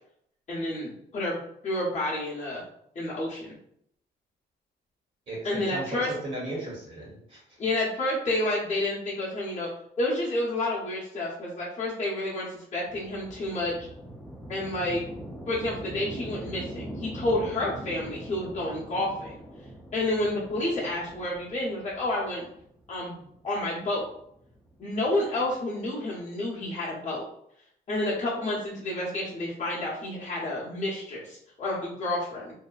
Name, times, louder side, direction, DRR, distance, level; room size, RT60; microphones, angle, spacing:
voice 1, 0.5-2.6 2.9-3.5 5.4-6.1 7.6-9.7 10.0-13.7 14.5-15.0 15.5-19.4 19.9-22.5 22.9-24.0 24.8-27.3 27.9-32.5, left 1 dB, 35° left, -6 dB, 0.9 m, -30 dB
voice 2, 5.3-7.6, right 1 dB, 40° right, -5 dB, 1.0 m, -36 dB
sound 1, 12.9-25.6, right 1 dB, ahead, 0.4 m, -42 dB
2.8 x 2.1 x 2.3 m, 0.71 s
cardioid pair, 90°, 20 cm